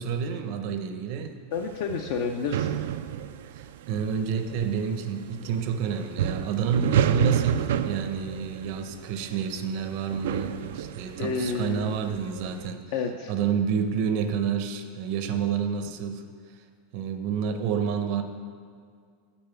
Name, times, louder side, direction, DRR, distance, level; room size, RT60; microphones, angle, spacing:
voice 1, 0.0-1.4 3.5-12.8 13.3-16.2 16.9-18.2, right 7 dB, 45° right, 8 dB, 0.6 m, -29 dB
voice 2, 1.5-2.7 11.2-11.9 12.9-13.3, left 5 dB, 55° left, 4 dB, 0.5 m, -30 dB
sound 1, 1.6-12.7, right 9 dB, 80° right, 0.3 m, -30 dB
7.0 x 5.4 x 6.9 m, 2.1 s
supercardioid pair, 160°, 0 cm